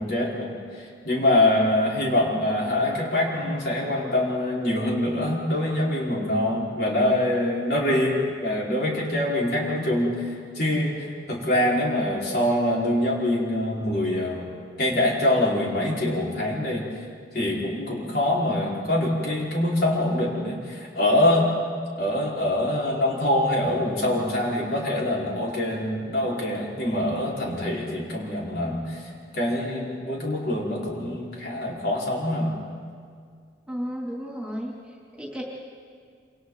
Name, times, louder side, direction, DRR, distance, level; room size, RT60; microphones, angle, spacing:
voice 1, 0.0-14.5 14.8-16.9 17.3-21.6 22.0-32.5, left 1 dB, 60° left, -4 dB, 5.0 m, -24 dB
voice 2, 33.7-35.4, equal, 5° right, -4 dB, 3.2 m, -33 dB
28.0 x 27.5 x 4.1 m, 2.1 s
head